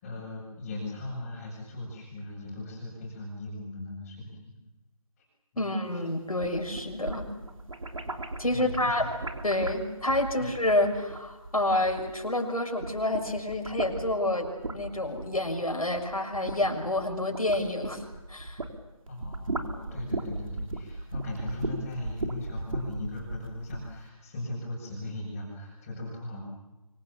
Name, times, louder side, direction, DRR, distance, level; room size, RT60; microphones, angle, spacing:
voice 1, 0.0-4.5 5.2-5.3 5.5-6.0 8.5-9.1 10.4-10.5 19.1-26.4, left 1 dB, 20° left, -5 dB, 6.6 m, -38 dB
voice 2, 5.6-7.3 8.4-9.1 9.4-18.0 18.3-18.6, left 1 dB, 85° left, 3 dB, 6.4 m, -28 dB
sound 1, 6.2-12.4 12.7-18.8 19.1-23.9, right 2 dB, 70° right, 3.6 m, -37 dB
26.0 x 25.0 x 7.1 m, 1.1 s
figure-of-eight pair, 155°, 18 cm